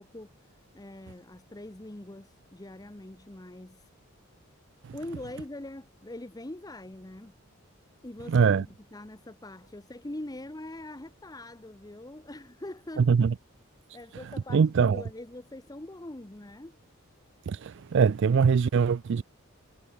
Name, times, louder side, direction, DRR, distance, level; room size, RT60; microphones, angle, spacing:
voice 1, 0.0-3.9 4.9-7.3 8.0-13.3 13.9-16.8, left 1 dB, 15° left, 0.9 m, -43 dB
voice 2, 8.3-8.6 13.0-13.3 14.5-15.0 17.5-19.2, right 6 dB, 55° right, 0.4 m, -23 dB
head